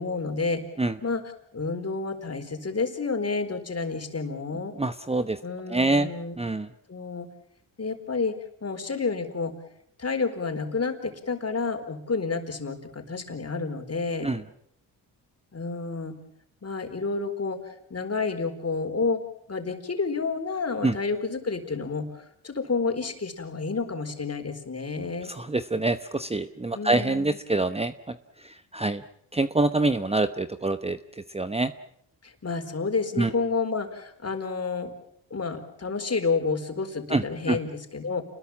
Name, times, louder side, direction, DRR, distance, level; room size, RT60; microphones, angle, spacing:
voice 1, 0.0-0.6 1.0-4.7 5.4-6.4 6.9-7.3 7.8-9.5 10.0-14.3 15.5-16.2 16.6-19.2 19.5-25.3 26.7-27.4 32.2-34.9 35.3-38.2, left 4 dB, 35° left, 6 dB, 4.4 m, -30 dB
voice 2, 4.8-5.4 5.7-6.1 6.4-6.7 14.2-14.4 20.8-20.9 25.4-27.9 28.7-29.0 29.3-31.0 31.3-31.7 33.2-33.3 37.1-37.2 37.5-37.6, right 2 dB, 15° right, 11 dB, 0.9 m, -25 dB
29.0 x 21.0 x 7.3 m, 0.72 s
cardioid pair, 80°, 42 cm